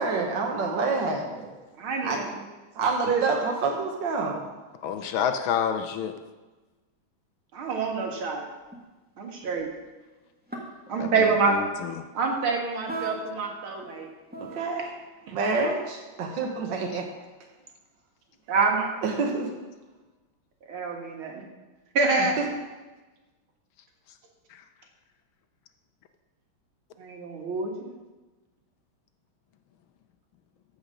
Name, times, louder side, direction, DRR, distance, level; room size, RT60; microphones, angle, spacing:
voice 1, 0.0-1.5 2.0-2.3 2.8-4.5 14.4-14.9 15.3-17.1 19.0-19.6 22.2-22.5, right 4 dB, 65° right, 0 dB, 1.9 m, -28 dB
voice 2, 1.8-2.2 3.0-3.2 7.5-8.4 9.2-9.7 10.9-11.6 12.1-14.1 15.3-15.4 18.5-19.3 20.7-21.4 21.9-22.5 27.0-27.9, right 4 dB, 85° right, 1 dB, 2.5 m, -26 dB
voice 3, 4.8-6.1 11.0-11.9, left 8 dB, 80° left, 8 dB, 1.5 m, -28 dB
sound 1, 8.7-8.8 9.4-9.9 10.5-10.9 12.8-13.4 13.7-14.6, right 3 dB, 5° right, 1.5 m, -37 dB
14.5 x 5.1 x 6.4 m, 1.2 s
omnidirectional pair, 2.2 m